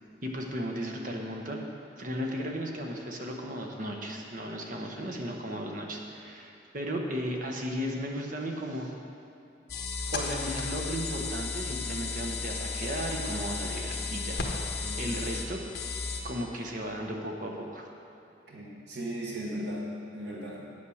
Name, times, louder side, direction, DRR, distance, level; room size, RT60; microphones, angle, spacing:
voice 1, 0.2-1.6 2.0-8.9 10.1-14.4 15.0-15.6 16.2-17.9, equal, 50° right, 1 dB, 1.2 m, -35 dB
sound 1, 9.7-16.2, left 4 dB, 65° left, 1.3 m, -34 dB
voice 2, 14.8-15.3 18.5-20.7, equal, 75° right, -3 dB, 1.2 m, -37 dB
8.7 x 8.4 x 6.4 m, 2.7 s
head